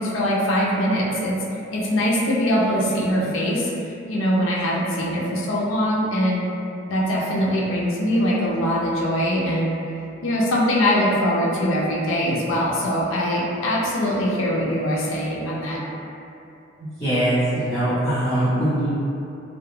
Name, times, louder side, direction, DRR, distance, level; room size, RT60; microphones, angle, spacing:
voice 1, 0.0-1.4 1.7-3.7 4.1-6.5 6.9-9.8 10.2-15.8, equal, 80° left, -4 dB, 0.4 m, -22 dB
voice 2, 17.0-19.0, right 1 dB, 10° left, -19 dB, 0.8 m, -21 dB
2.2 x 2.1 x 3.0 m, 2.7 s
head